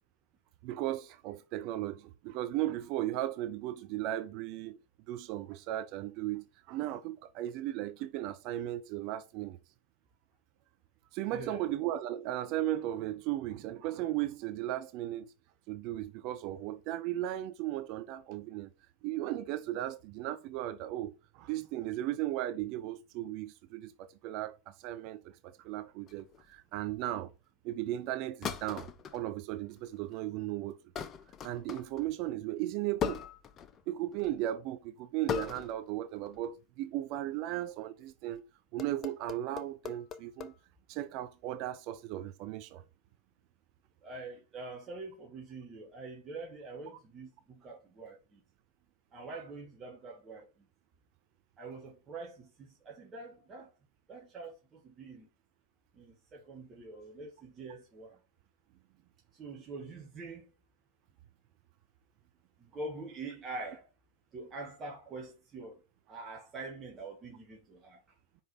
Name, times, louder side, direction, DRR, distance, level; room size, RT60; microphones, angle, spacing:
voice 1, 0.6-4.8 5.1-9.6 11.1-15.3 15.7-18.7 19.0-27.3 27.6-30.8 31.4-33.3 33.9-38.4 38.7-40.5 40.9-42.8, right 14 dB, 45° right, 0.6 m, -36 dB
voice 2, 11.3-11.7 44.0-48.4 49.1-50.5 51.6-53.7 54.1-55.3 56.0-58.2 59.4-60.5 62.6-63.8 64.3-65.8 66.1-68.0, right 3 dB, 25° right, 2.4 m, -45 dB
sound 1, 26.1-26.5 28.4-29.2 29.8-30.2 31.0-32.1 33.0-33.8 34.1-34.4 35.3-35.8 36.2-36.5 38.1-38.4 38.8-40.5, left 8 dB, 30° left, 0.8 m, -39 dB
5.5 x 5.3 x 5.9 m
figure-of-eight pair, 90°, 0 cm